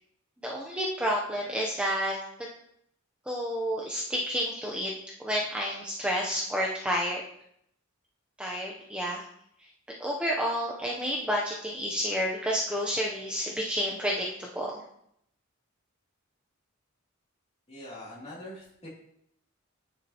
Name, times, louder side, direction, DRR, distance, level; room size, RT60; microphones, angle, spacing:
voice 1, 0.4-2.2 3.3-4.9 5.2-7.2 8.4-9.3 10.0-14.7, equal, 5° right, -3 dB, 0.6 m, -30 dB
voice 2, 17.7-18.9, left 1 dB, 30° left, -6 dB, 2.6 m, -43 dB
9.8 x 5.3 x 2.9 m, 0.73 s
head